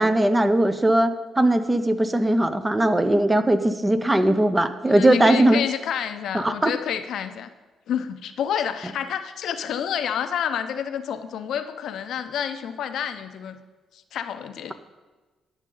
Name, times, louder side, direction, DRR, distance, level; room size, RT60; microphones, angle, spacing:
voice 1, 0.0-5.6 6.3-6.7, right 1 dB, 15° right, 10 dB, 0.6 m, -19 dB
voice 2, 4.9-7.5 7.9-13.6 14.1-14.7, left 8 dB, 70° left, 10 dB, 0.5 m, -29 dB
11.0 x 6.3 x 3.8 m, 1.3 s
cardioid pair, 90°, 0 cm